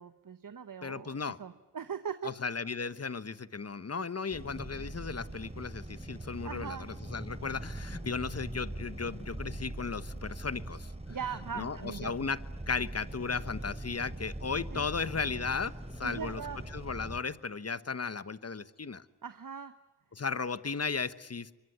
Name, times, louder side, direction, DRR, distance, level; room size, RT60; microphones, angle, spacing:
voice 1, 0.0-2.3 6.4-6.9 11.1-12.1 14.7-14.9 16.0-16.6 19.2-19.7, right 7 dB, 50° right, 10 dB, 1.2 m, -40 dB
voice 2, 0.8-1.4 2.2-10.9 11.5-16.4 16.7-19.0 20.1-21.6, left 5 dB, 35° left, 15 dB, 1.2 m, -35 dB
sound 1, 4.3-17.2, right 1 dB, 15° right, 3.6 m, -42 dB
24.0 x 22.5 x 9.9 m, 1.1 s
cardioid pair, 45°, 43 cm